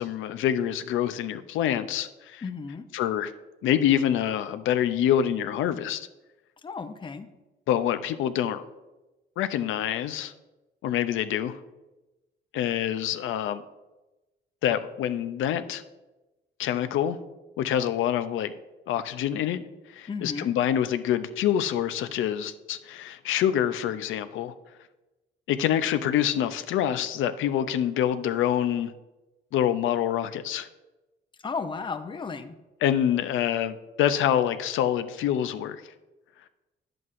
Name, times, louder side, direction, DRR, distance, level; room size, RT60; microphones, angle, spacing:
voice 1, 0.0-2.4 2.9-3.3 3.6-6.1 7.7-8.6 9.4-10.3 10.8-11.6 12.5-13.6 14.6-15.8 16.6-17.2 17.6-18.5 18.9-19.6 19.9-24.5 25.5-28.9 29.5-30.7 32.8-35.8, left 10 dB, 80° left, 11 dB, 0.5 m, -26 dB
voice 2, 2.4-2.9 6.6-7.3 20.1-20.5 31.4-32.6, left 4 dB, 25° left, 8 dB, 0.6 m, -34 dB
9.4 x 7.6 x 2.5 m, 1.1 s
cardioid pair, 90°, 20 cm